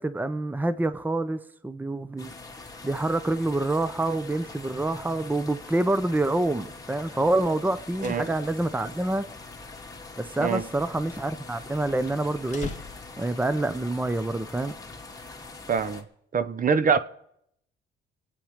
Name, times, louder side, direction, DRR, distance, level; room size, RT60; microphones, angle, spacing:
voice 1, 0.0-2.3 2.8-9.2 10.2-12.7 13.2-14.7, right 2 dB, 10° right, 0.8 m, -27 dB
sound 1, 2.2-16.0, left 3 dB, 15° left, 2.4 m, -43 dB
sound 2, 7.7-13.5, left 5 dB, 40° left, 2.1 m, -46 dB
voice 2, 8.0-8.3 10.4-10.6 15.7-16.0 16.3-17.0, right 5 dB, 45° right, 0.9 m, -24 dB
24.0 x 8.8 x 5.1 m
cardioid pair, 90°, 20 cm